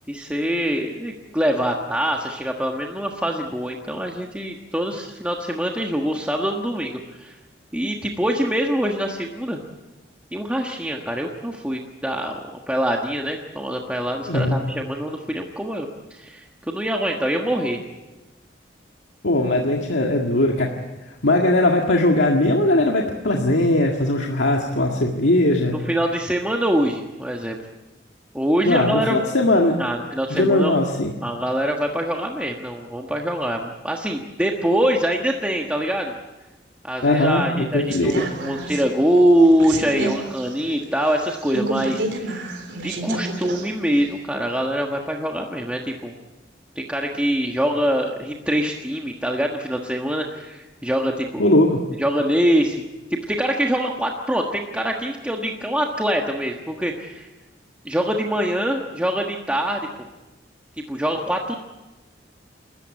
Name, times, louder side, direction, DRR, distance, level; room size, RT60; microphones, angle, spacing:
voice 1, 0.1-7.4 7.7-9.6 10.3-12.4 12.7-17.8 25.7-27.6 28.3-29.2 29.8-30.8 31.2-36.1 36.8-42.4 42.8-46.1 46.7-51.4 52.0-52.8 53.1-57.3 57.8-59.8 60.8-61.6, equal, 5° right, 1 dB, 1.4 m, -24 dB
voice 2, 14.3-14.6 19.2-20.7 21.2-25.8 28.7-29.8 30.3-31.1 37.0-38.2 51.4-51.8, left 1 dB, 80° left, 1 dB, 1.9 m, -19 dB
sound 1, 37.9-43.7 44.0-44.1, right 2 dB, 75° right, 3.6 m, -30 dB
29.0 x 14.0 x 8.3 m, 1.1 s
head